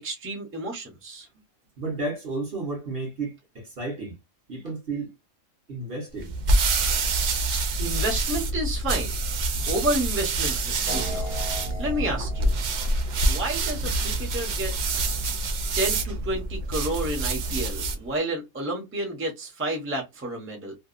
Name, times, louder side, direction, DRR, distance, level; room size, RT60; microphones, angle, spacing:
voice 1, 0.0-1.3 7.8-9.1 9.7-11.3 11.8-12.5 13.3-14.7 15.8-20.7, right 1 dB, 10° right, 0.7 m, -30 dB
voice 2, 1.8-4.2 4.5-5.1 5.7-6.3, right 3 dB, 50° right, 1.1 m, -32 dB
sound 1, 6.2-18.1, right 2 dB, 85° right, 0.4 m, -26 dB
sound 2, 10.9-13.9, right 1 dB, 40° left, 0.8 m, -38 dB
2.7 x 2.3 x 2.4 m
omnidirectional pair, 1.3 m